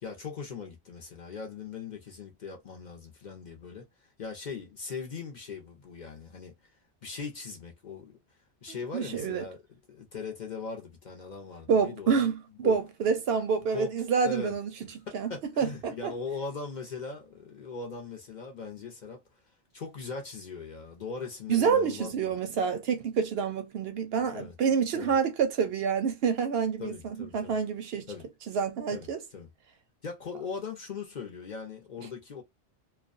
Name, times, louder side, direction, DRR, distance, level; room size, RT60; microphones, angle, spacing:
voice 1, 0.0-6.5 7.0-8.2 8.6-12.2 12.6-12.8 13.7-13.9 14.2-14.5 15.3-19.2 19.7-22.1 24.2-24.5 24.9-25.1 26.8-27.6 28.1-28.2 28.9-29.5 30.0-32.4, left 5 dB, 45° left, 0.7 m, -40 dB
voice 2, 8.9-9.4 11.7-14.7 15.1-15.3 15.6-16.1 21.5-28.1 28.5-29.2, right 6 dB, 65° right, 0.7 m, -27 dB
2.4 x 2.2 x 2.4 m
omnidirectional pair, 1.2 m